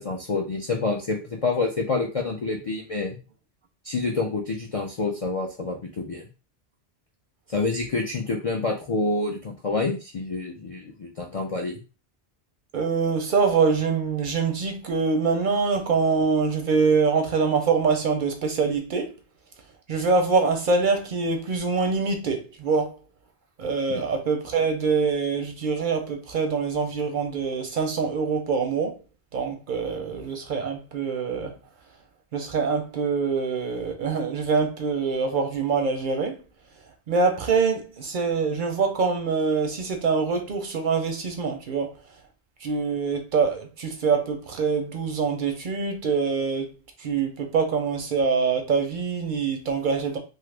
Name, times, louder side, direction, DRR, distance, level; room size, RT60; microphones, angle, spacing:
voice 1, 0.0-3.2 3.8-6.3 7.5-11.8 23.9-24.0, left 3 dB, 60° left, 0.3 m, -27 dB
voice 2, 12.7-19.1 19.9-22.9 23.6-29.0 29.3-31.5 32.3-36.4 37.1-41.9 42.6-46.7 47.0-50.2, right 5 dB, 60° right, 0.6 m, -24 dB
2.9 x 2.3 x 3.2 m
omnidirectional pair, 1.1 m